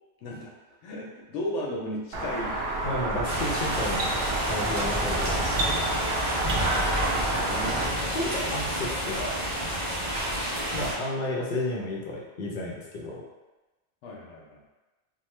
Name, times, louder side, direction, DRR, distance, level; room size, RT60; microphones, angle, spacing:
voice 1, 0.2-0.5 0.8-2.5 3.1-3.4 7.1-8.5 14.0-14.6, left 1 dB, 90° left, -2 dB, 1.0 m, -36 dB
sound 1, 2.1-7.9, right 2 dB, 65° right, 0.8 m, -29 dB
voice 2, 2.8-4.1 4.5-5.4 8.1-9.4 10.7-13.2, left 1 dB, 60° left, -3 dB, 0.6 m, -32 dB
sound 2, 3.2-10.9, right 1 dB, 35° right, 1.0 m, -29 dB
3.1 x 2.1 x 3.1 m, 1.1 s
omnidirectional pair, 1.2 m